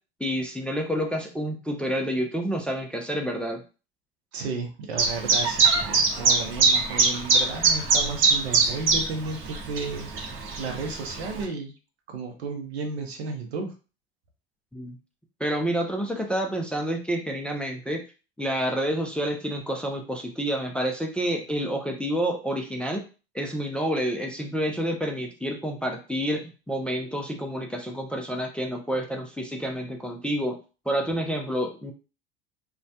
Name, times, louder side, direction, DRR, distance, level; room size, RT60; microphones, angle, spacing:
voice 1, 0.2-3.6 14.7-15.0 15.4-18.0 18.4-23.0 23.3-30.6 30.9-31.9, equal, 5° left, 2 dB, 0.3 m, -29 dB
voice 2, 4.3-11.7 12.1-13.7, right 4 dB, 85° right, 5 dB, 0.7 m, -33 dB
Chirp tweet, 5.0-11.4, right 4 dB, 40° right, 0.7 m, -23 dB
2.2 x 2.0 x 2.7 m, 0.34 s
hypercardioid pair, 75°, 31 cm